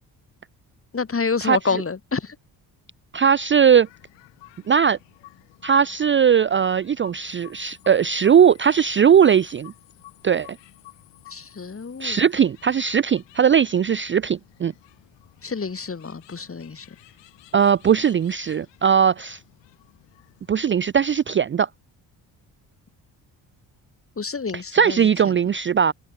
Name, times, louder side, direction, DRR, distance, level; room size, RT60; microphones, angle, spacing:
voice 1, 0.9-2.4 11.3-12.2 15.4-16.9 24.2-25.1, left 5 dB, 30° left, 2.3 m, -28 dB
voice 2, 3.1-3.9 4.7-5.0 5.6-9.7 10.2-10.5 12.0-14.7 17.5-19.4 20.5-21.7 24.5-25.9, right 7 dB, 30° right, 0.5 m, -19 dB
sound 1, 3.5-20.7, left 18 dB, 80° left, 5.7 m, -52 dB
open air
supercardioid pair, 55°, 43 cm